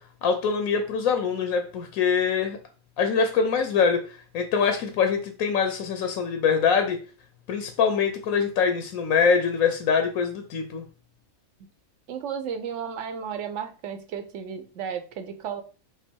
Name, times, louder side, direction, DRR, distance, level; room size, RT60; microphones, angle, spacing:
voice 1, 0.2-2.6 3.0-4.0 4.3-7.0 7.5-10.8, left 6 dB, 85° left, 6 dB, 1.1 m, -24 dB
voice 2, 12.1-15.6, right 7 dB, 65° right, 8 dB, 1.0 m, -33 dB
6.0 x 2.0 x 4.3 m, 0.36 s
omnidirectional pair, 1.4 m